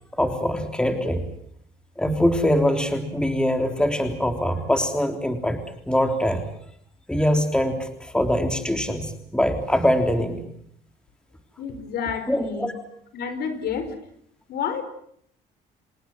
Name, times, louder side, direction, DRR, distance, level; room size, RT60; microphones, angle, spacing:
voice 1, 0.1-1.2 2.0-6.5 7.1-10.4 12.3-12.7, equal, 5° left, 6 dB, 3.5 m, -23 dB
voice 2, 11.6-12.7 13.1-14.0 14.5-14.8, left 7 dB, 70° left, 11 dB, 4.9 m, -29 dB
27.5 x 19.5 x 7.7 m, 0.68 s
cardioid pair, 110°, 17 cm